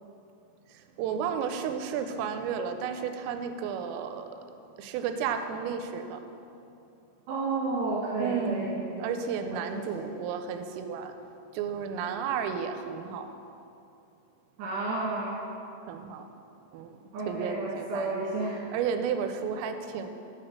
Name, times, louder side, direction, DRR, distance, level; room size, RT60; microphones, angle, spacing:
voice 1, 0.7-4.4 4.8-6.2 8.2-11.2 11.5-13.3 15.9-16.3 16.7-17.0 17.3-18.1 18.7-20.1, right 7 dB, 85° right, 7 dB, 3.1 m, -32 dB
voice 2, 7.3-9.1 9.5-10.1 14.6-15.4 17.1-18.7, right 3 dB, 70° right, -7 dB, 3.1 m, -32 dB
7.8 x 5.0 x 7.2 m, 2.7 s
omnidirectional pair, 5.9 m